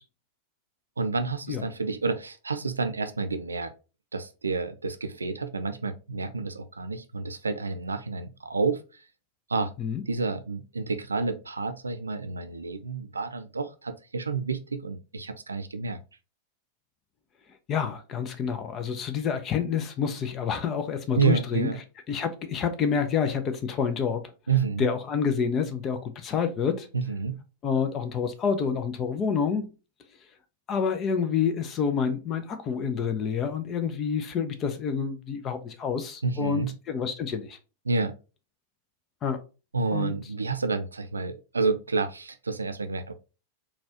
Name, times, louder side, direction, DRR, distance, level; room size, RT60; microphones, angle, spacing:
voice 1, 1.0-3.7 4.1-9.0 9.5-9.7 10.1-16.0 21.1-21.8 24.5-24.9 26.9-27.4 36.2-36.7 37.9-38.1 39.7-43.1, right 4 dB, 75° right, 0.3 m, -29 dB
voice 2, 17.7-21.7 22.1-24.3 24.8-26.9 27.6-29.7 30.7-37.6 39.2-39.4 39.9-40.2, left 6 dB, 30° left, 0.5 m, -28 dB
4.0 x 2.4 x 2.7 m
figure-of-eight pair, 90°, 0 cm